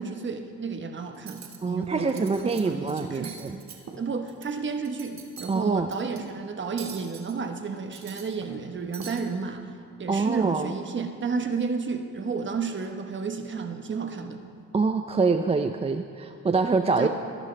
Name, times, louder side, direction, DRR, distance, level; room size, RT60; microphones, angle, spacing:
voice 1, 0.0-3.4 4.0-9.7 10.0-14.4 17.0-17.1, right 5 dB, 40° right, 6 dB, 1.2 m, -32 dB
Cutlery silverware, 1.1-1.6 2.0-2.6 2.9-4.5 4.8-5.5 5.9-6.2 6.8-7.3 7.8-8.6 8.9-9.2, right 6 dB, 65° right, 1.6 m, -43 dB
voice 2, 1.6-3.6 5.5-5.9 10.1-10.7 14.7-17.1, right 4 dB, 20° right, 7 dB, 0.5 m, -25 dB
22.0 x 11.0 x 3.4 m, 2.3 s
cardioid pair, 90°, 30 cm